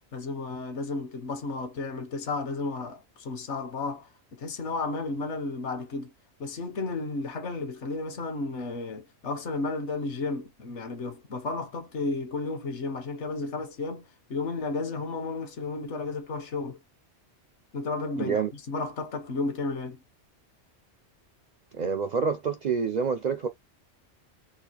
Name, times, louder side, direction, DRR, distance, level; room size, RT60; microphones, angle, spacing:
voice 1, 0.1-4.1 4.4-6.1 6.4-16.8 17.7-20.0, left 3 dB, 75° left, 1.2 m, -33 dB
voice 2, 18.2-18.5 21.7-23.5, right 6 dB, 65° right, 0.4 m, -27 dB
4.1 x 2.4 x 2.9 m
omnidirectional pair, 1.2 m